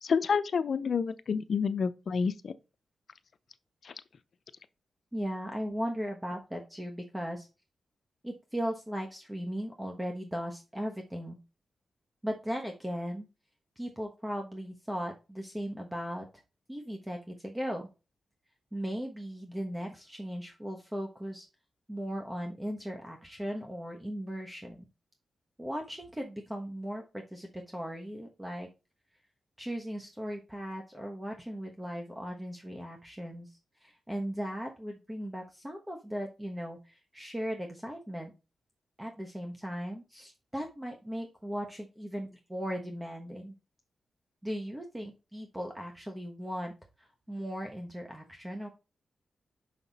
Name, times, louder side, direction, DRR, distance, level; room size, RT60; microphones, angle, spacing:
voice 1, 0.0-2.6 3.8-3.9, left 6 dB, 65° left, 0.5 m, -29 dB
voice 2, 5.1-7.5 8.2-11.4 12.2-13.3 13.8-16.3 16.7-17.9 18.7-21.5 21.9-24.8 25.6-28.7 29.6-38.3 39.0-43.5 44.4-48.7, equal, 15° right, 1.2 m, -37 dB
5.8 x 5.7 x 4.1 m
cardioid pair, 80°, 0 cm